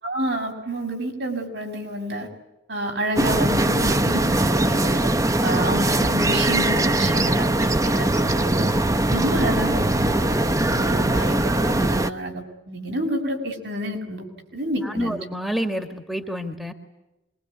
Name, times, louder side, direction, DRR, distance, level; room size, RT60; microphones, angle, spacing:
voice 1, 0.0-2.3 2.7-5.0 5.4-8.7 9.1-14.2 14.5-15.2, equal, 70° right, 4 dB, 6.8 m, -28 dB
sound 1, 3.2-12.1, right 1 dB, 20° right, 1.0 m, -21 dB
voice 2, 14.8-16.7, equal, ahead, 6 dB, 1.8 m, -28 dB
25.5 x 23.5 x 9.7 m, 0.95 s
head